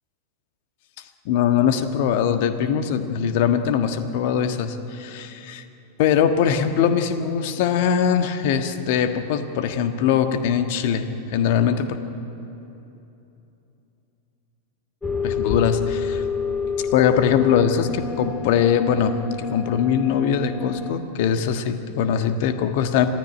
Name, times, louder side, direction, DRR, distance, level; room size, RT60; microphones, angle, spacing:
voice 1, 1.2-5.6 6.0-12.0 15.2-16.2 16.8-23.1, left 8 dB, 50° left, 8 dB, 1.4 m, -21 dB
sound 1, 15.0-20.9, left 6 dB, 10° left, 1.9 m, -28 dB
25.5 x 16.0 x 9.9 m, 3.0 s
figure-of-eight pair, 90°, 0 cm